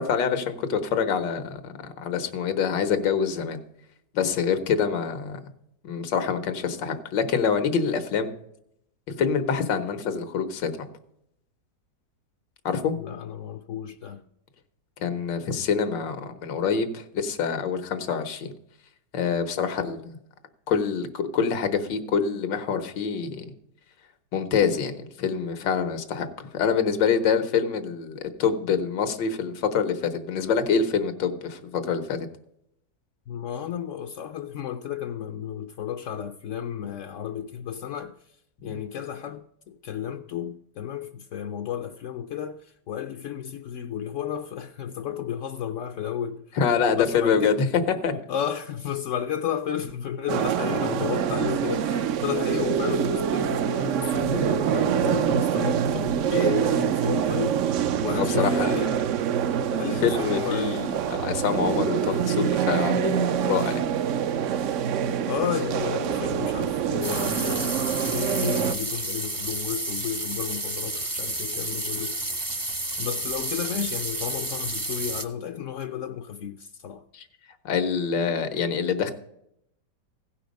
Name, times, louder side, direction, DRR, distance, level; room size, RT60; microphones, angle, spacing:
voice 1, 0.0-3.6 4.1-5.4 5.8-8.3 9.1-10.9 12.6-13.0 15.0-18.5 19.1-20.2 20.7-23.5 24.3-32.3 38.6-38.8 46.6-48.2 58.1-58.7 59.7-63.9 77.1-77.2 77.6-79.1, left 6 dB, 90° left, 1.7 m, -26 dB
voice 2, 13.0-14.2 33.3-38.2 38.6-46.4 46.9-47.6 48.3-57.6 58.0-59.0 59.8-60.9 65.2-72.2 73.0-77.0, left 9 dB, 70° left, 0.7 m, -32 dB
sound 1, 50.3-68.8, right 9 dB, 80° right, 0.7 m, -25 dB
sound 2, 67.0-75.2, right 2 dB, 20° right, 0.5 m, -31 dB
16.0 x 5.7 x 5.2 m
omnidirectional pair, 1.9 m